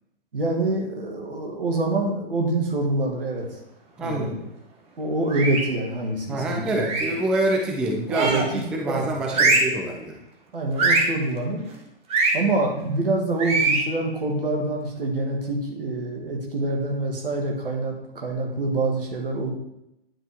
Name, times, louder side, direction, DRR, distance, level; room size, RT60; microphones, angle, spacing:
voice 1, 0.3-3.6 4.0-4.4 5.0-6.9 8.1-9.6 10.5-11.6 12.3-19.5, right 2 dB, 70° right, 1 dB, 1.8 m, -26 dB
voice 2, 4.0-4.4 6.3-10.2, right 1 dB, 5° right, 1 dB, 0.3 m, -26 dB
sound 1, 5.3-5.8 6.8-7.2 8.1-8.6 9.3-9.8 10.8-11.2 12.1-12.4 13.4-13.9, right 3 dB, 20° right, 1.2 m, -22 dB
9.7 x 4.5 x 3.5 m, 0.81 s
figure-of-eight pair, 115°, 29 cm